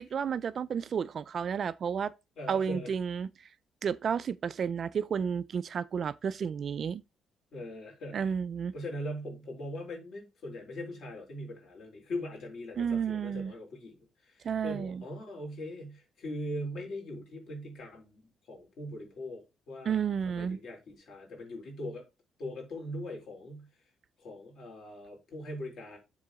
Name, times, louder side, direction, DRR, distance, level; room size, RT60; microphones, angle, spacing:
voice 1, 0.0-2.1 2.5-3.5 3.8-7.0 8.1-8.7 12.8-13.5 14.4-15.0 19.8-20.6, right 7 dB, 35° right, 0.3 m, -32 dB
voice 2, 2.4-2.9 7.5-8.3 8.7-14.0 14.2-22.0 22.4-23.7 24.2-26.0, left 1 dB, 50° left, 4.0 m, -41 dB
7.4 x 3.7 x 6.2 m
cardioid pair, 175°, 0 cm